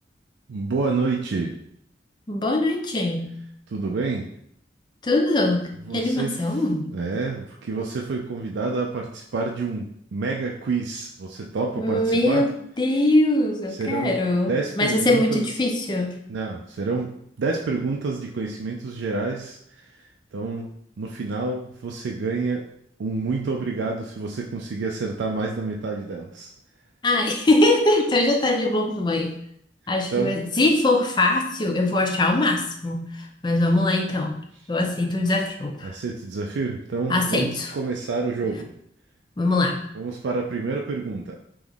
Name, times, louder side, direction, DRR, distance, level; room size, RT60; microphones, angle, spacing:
voice 1, 0.5-1.6 3.7-4.3 5.9-6.6 6.9-12.4 13.8-14.2 14.5-15.5 16.3-17.1 17.4-20.1 20.3-20.7 21.0-22.6 23.0-26.5 30.1-30.4 35.8-38.7 39.9-41.4, right 4 dB, 80° right, 0 dB, 0.4 m, -28 dB
voice 2, 2.3-3.4 5.0-7.0 11.8-12.5 12.8-16.1 27.0-29.4 29.9-34.4 34.7-36.0 37.1-37.7 39.4-39.8, left 2 dB, 25° left, 3 dB, 0.4 m, -22 dB
3.4 x 3.0 x 3.7 m, 0.71 s
head